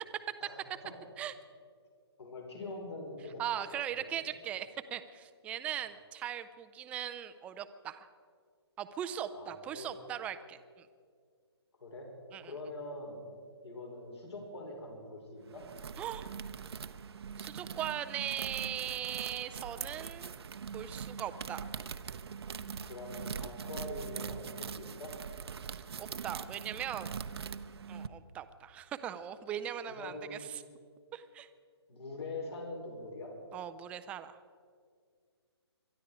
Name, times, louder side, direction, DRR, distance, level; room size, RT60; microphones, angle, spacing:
voice 1, 0.4-0.9 2.2-3.8 4.2-4.3 9.3-9.9 11.8-12.1 12.4-13.2 13.6-15.6 22.8-25.1 29.9-30.4 31.9-33.3, left 2 dB, 75° left, 1 dB, 5.1 m, -44 dB
voice 2, 3.4-8.1 8.8-10.9 12.3-12.5 16.0-16.3 17.4-20.4 20.7-21.7 26.0-27.1 27.9-30.6 31.1-31.5 33.5-34.4, right 10 dB, 10° right, 12 dB, 0.4 m, -39 dB
sound 1, 15.5-28.1, right 6 dB, 65° right, 0.7 m, -42 dB
22.5 x 12.5 x 4.9 m, 2.1 s
hypercardioid pair, 150°, 14 cm